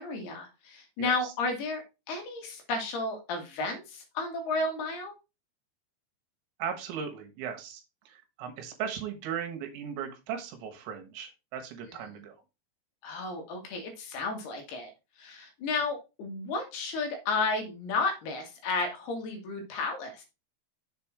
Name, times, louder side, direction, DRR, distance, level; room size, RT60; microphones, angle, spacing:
voice 1, 0.0-1.8 2.1-5.1 11.9-12.1 13.0-14.9 15.2-20.2, left 3 dB, 65° left, 3 dB, 3.0 m, -32 dB
voice 2, 1.0-1.3 6.6-12.4, right 8 dB, 75° right, 5 dB, 3.5 m, -37 dB
7.2 x 4.4 x 4.7 m, 0.26 s
omnidirectional pair, 5.6 m